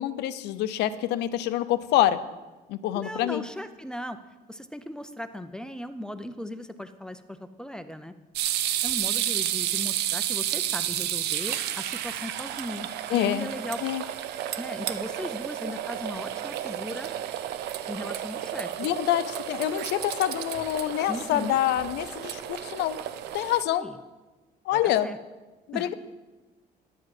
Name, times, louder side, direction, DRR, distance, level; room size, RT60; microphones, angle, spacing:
voice 1, 0.0-2.2 2.7-3.4 13.1-13.5 13.8-14.0 18.8-23.0 23.3-23.9 24.7-25.1 25.7-25.9, left 13 dB, 85° left, 14 dB, 0.6 m, -26 dB
voice 2, 2.9-4.2 4.5-8.1 8.8-13.8 14.6-17.1 17.9-18.7 21.1-21.6 23.7-24.0 24.7-25.2 25.7-25.9, left 1 dB, 5° left, 10 dB, 0.4 m, -37 dB
sound 1, 8.4-23.6, right 12 dB, 75° right, 0.6 m, -31 dB
10.5 x 4.9 x 7.6 m, 1.2 s
cardioid pair, 110°, 17 cm